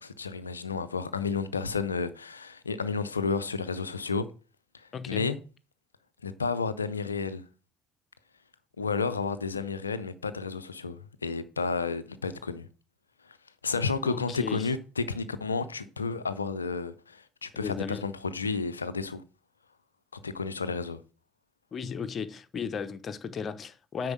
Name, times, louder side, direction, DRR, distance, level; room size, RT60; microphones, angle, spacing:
voice 1, 0.0-4.3 4.7-5.4 6.2-7.5 8.8-12.7 13.3-13.4 13.6-19.2 20.2-21.0, left 4 dB, 85° left, 0.5 m, -31 dB
voice 2, 4.9-5.3 14.0-14.7 17.5-18.1 21.7-24.1, left 6 dB, 45° left, 1.0 m, -35 dB
9.5 x 4.5 x 6.1 m
figure-of-eight pair, 50°, 0 cm